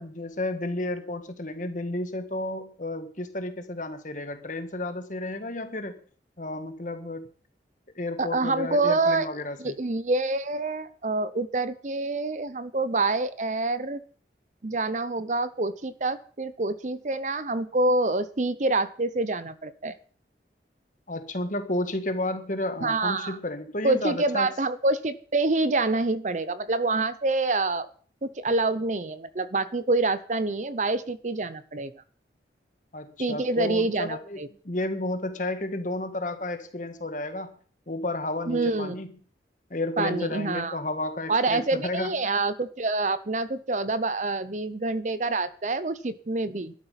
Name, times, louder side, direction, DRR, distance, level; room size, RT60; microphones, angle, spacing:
voice 1, 0.0-6.0 6.4-7.2 7.9-9.8 21.1-24.5 32.9-37.5 37.9-39.1 39.7-42.1, left 2 dB, 45° left, 9 dB, 1.7 m, -32 dB
voice 2, 8.2-9.3 9.6-14.0 14.6-20.0 22.8-23.4 23.8-27.9 28.2-31.9 33.2-34.5 38.5-38.9 40.0-40.8 41.3-46.7, right 3 dB, 40° right, 15 dB, 0.7 m, -26 dB
12.0 x 12.0 x 5.7 m, 0.43 s
head